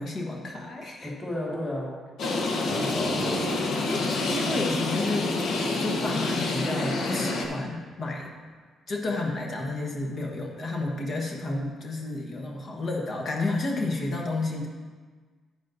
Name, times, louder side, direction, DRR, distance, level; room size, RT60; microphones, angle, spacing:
voice 1, 0.0-1.1 2.2-2.4 3.8-5.4 5.7-8.3 8.9-14.7, left 2 dB, 50° left, 0 dB, 1.3 m, -31 dB
voice 2, 1.0-1.9 2.7-3.6, left 1 dB, 15° left, -6 dB, 2.8 m, -32 dB
sound 1, 2.2-7.5, left 2 dB, 75° left, 1.1 m, -27 dB
9.8 x 9.2 x 2.7 m, 1.5 s
cardioid pair, 90°, 0 cm